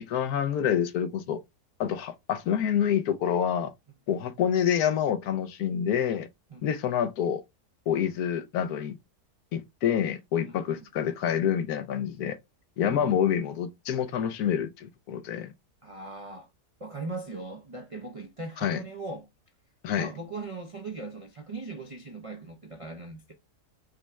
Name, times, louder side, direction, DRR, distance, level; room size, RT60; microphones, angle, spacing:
voice 1, 0.0-1.4 1.8-3.7 4.1-6.3 6.6-7.4 7.9-9.0 9.5-12.4 12.8-15.5 18.6-18.8 19.8-20.1, left 9 dB, 75° left, 1.1 m, -27 dB
voice 2, 10.4-10.9 12.8-13.2 15.8-16.5 16.8-19.3 20.0-23.3, right 3 dB, 55° right, 0.3 m, -39 dB
5.2 x 2.1 x 4.5 m
omnidirectional pair, 1.7 m